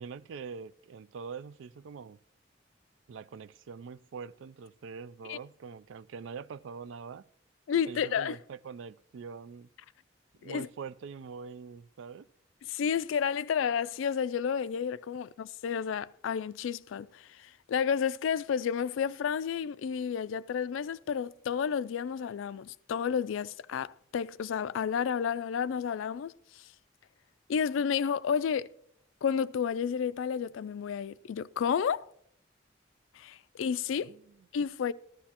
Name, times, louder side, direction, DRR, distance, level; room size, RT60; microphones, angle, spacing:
voice 1, 0.0-2.2 3.1-7.3 7.9-9.7 10.4-12.3 34.0-34.5, right 5 dB, 80° right, 0.3 m, -44 dB
voice 2, 7.7-8.4 10.4-10.7 12.7-26.7 27.5-28.7 29.2-32.1 33.1-34.1 34.5-34.9, left 7 dB, 85° left, 0.3 m, -31 dB
14.5 x 13.0 x 2.9 m
head